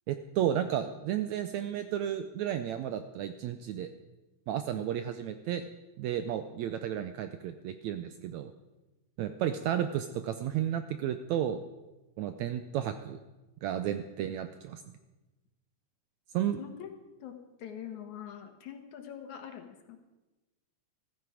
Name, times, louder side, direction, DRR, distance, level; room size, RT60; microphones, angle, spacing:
voice 1, 0.1-3.9 4.5-5.7 6.0-8.5 9.2-11.6 12.2-13.2 13.6-14.8 16.3-16.6, right 10 dB, 80° right, 9 dB, 1.7 m, -32 dB
voice 2, 16.6-17.0 17.2-20.0, left 9 dB, 65° left, 6 dB, 2.5 m, -44 dB
14.5 x 14.0 x 4.9 m, 1.1 s
omnidirectional pair, 3.8 m